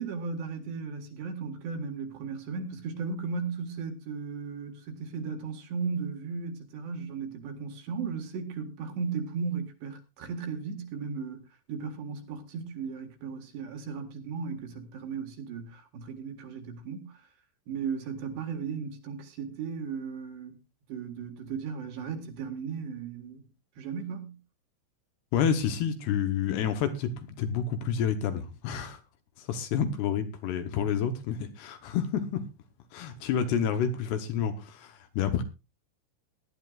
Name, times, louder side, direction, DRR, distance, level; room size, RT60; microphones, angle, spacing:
voice 1, 0.0-11.4 11.7-17.2 17.7-20.6 20.9-23.5 23.8-24.4, right 5 dB, 65° right, 3.6 m, -36 dB
voice 2, 25.3-29.0 29.4-32.4 32.9-35.4, left 7 dB, 70° left, 2.7 m, -29 dB
20.0 x 11.0 x 2.4 m
omnidirectional pair, 5.5 m